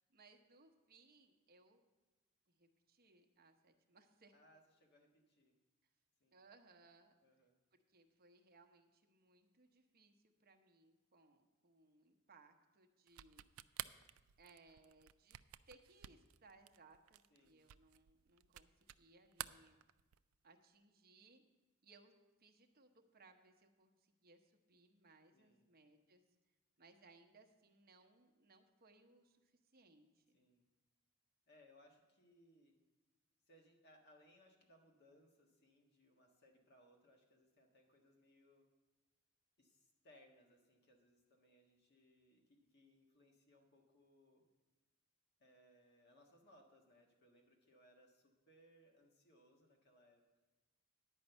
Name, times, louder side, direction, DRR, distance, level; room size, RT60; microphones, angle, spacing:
voice 1, 0.0-1.8 2.5-4.3 6.3-7.1 7.9-10.1 10.4-13.7 14.4-15.4 15.7-19.8 20.4-21.4 21.8-22.1 22.4-26.2 26.8-30.4, right 3 dB, 45° right, 4 dB, 0.9 m, -67 dB
voice 2, 4.3-5.5 6.2-6.4 7.2-7.5 17.3-17.7 25.3-25.7 30.3-30.6 31.5-32.7 33.5-38.6 39.6-44.4 45.4-50.4, equal, 50° left, 1 dB, 1.5 m, -69 dB
sound 1, 13.1-19.1 19.3-20.3, right 13 dB, 75° right, 0.3 m, -51 dB
10.0 x 5.3 x 7.9 m, 1.2 s
head